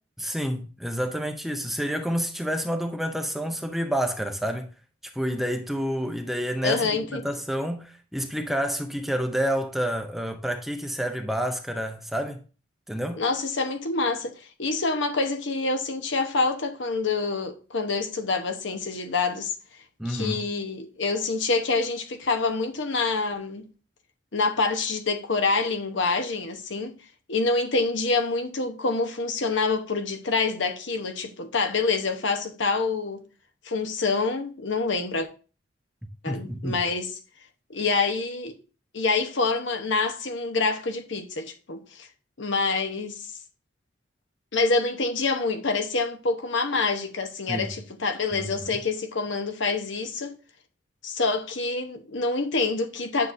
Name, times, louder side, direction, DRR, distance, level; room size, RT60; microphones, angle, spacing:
voice 1, 0.2-4.7 5.1-12.4 12.9-13.2 20.0-20.5 36.3-36.8 47.5-47.7 48.3-48.5, equal, ahead, 0.5 m, -29 dB
voice 2, 6.6-7.2 13.2-19.5 20.0-23.6 24.3-27.0 27.3-33.3 33.6-35.3 36.2-37.2 37.7-38.5 38.9-42.1 42.4-43.3 44.5-50.3 51.0-53.3, left 3 dB, 75° left, 1.0 m, -26 dB
9.6 x 6.6 x 2.6 m
head